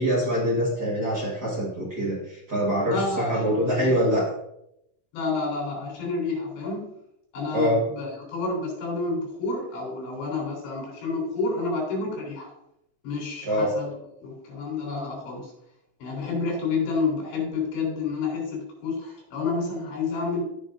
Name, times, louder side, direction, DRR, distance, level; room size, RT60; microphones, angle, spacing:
voice 1, 0.0-4.2 7.5-7.8 13.4-13.7, equal, 70° right, -5 dB, 0.9 m, -24 dB
voice 2, 2.9-4.0 5.1-6.9 7.3-12.5 13.0-15.5 16.0-20.4, left 4 dB, 85° left, -2 dB, 5.9 m, -29 dB
16.5 x 5.6 x 2.6 m, 0.80 s
omnidirectional pair, 4.9 m